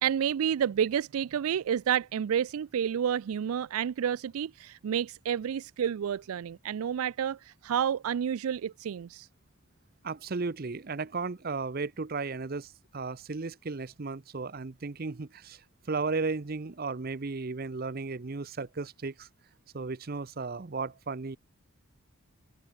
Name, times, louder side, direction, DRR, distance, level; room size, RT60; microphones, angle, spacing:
voice 1, 0.0-9.3, right 8 dB, 80° right, 0.4 m, -30 dB
voice 2, 10.0-19.3 19.7-21.4, right 4 dB, 45° right, 0.6 m, -35 dB
open air
head